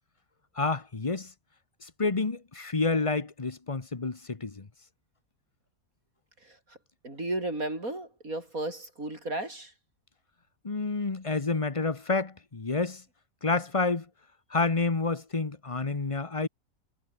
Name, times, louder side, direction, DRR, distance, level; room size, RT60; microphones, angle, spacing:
voice 1, 0.6-1.3 1.8-4.7 10.6-13.0 13.4-14.0 14.5-16.5, left 3 dB, 25° left, 1.1 m, -29 dB
voice 2, 7.0-9.7, right 2 dB, 85° right, 8.1 m, -34 dB
omnidirectional pair, 1.4 m